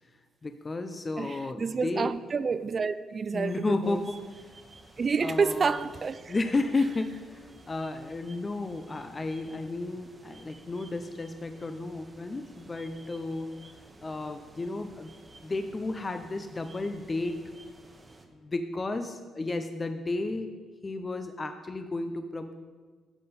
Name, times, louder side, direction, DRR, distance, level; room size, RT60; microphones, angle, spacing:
voice 1, 0.4-2.2 3.3-4.5 5.2-5.9 6.3-13.6 14.0-15.1 15.4-17.4 18.3-20.5 20.8-22.6, left 2 dB, 30° left, 0.6 m, -33 dB
voice 2, 1.2-4.0 5.0-6.3, right 5 dB, 40° right, 0.3 m, -29 dB
sound 1, 3.8-18.3, right 2 dB, 25° right, 1.1 m, -53 dB
11.0 x 6.6 x 4.3 m
cardioid pair, 90°, 0 cm